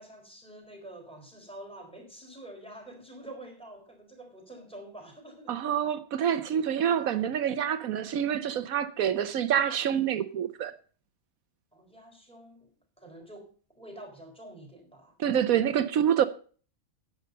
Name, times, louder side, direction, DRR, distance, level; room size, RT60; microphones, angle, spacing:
voice 1, 0.0-5.9 6.3-6.4 7.0-7.2 11.7-12.7 13.0-15.1, right 1 dB, 5° left, 4.1 m, -47 dB
voice 2, 5.5-10.7 15.2-16.2, right 9 dB, 80° right, 1.2 m, -27 dB
10.5 x 8.8 x 5.3 m
omnidirectional pair, 1.5 m